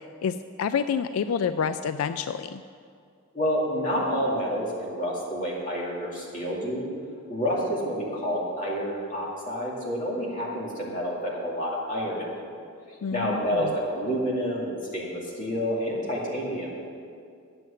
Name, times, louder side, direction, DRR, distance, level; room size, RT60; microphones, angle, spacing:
voice 1, 0.2-2.6 13.0-13.7, left 6 dB, 85° left, 11 dB, 0.3 m, -28 dB
voice 2, 3.3-6.9 7.3-12.3 13.1-16.7, equal, 40° left, -4 dB, 2.4 m, -29 dB
9.3 x 7.8 x 7.4 m, 2.3 s
head